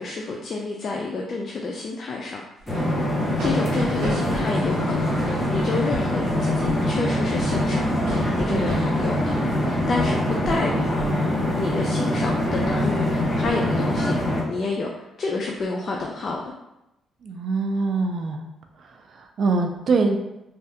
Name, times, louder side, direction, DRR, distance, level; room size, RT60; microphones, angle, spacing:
voice 1, 0.0-2.4 3.4-7.9 8.3-11.1 11.6-16.5, left 3 dB, 50° left, 0 dB, 0.3 m, -29 dB
sound 1, 2.6-10.7 10.9-11.2 11.6-11.9 12.4-13.5, right 1 dB, 80° right, 1.1 m, -35 dB
sound 2, 2.7-14.4, left 1 dB, 10° left, 0.8 m, -24 dB
voice 2, 17.2-18.4 19.1-20.2, right 3 dB, 60° right, 4 dB, 0.4 m, -23 dB
3.2 x 2.3 x 2.8 m, 0.89 s
cardioid pair, 90°, 0 cm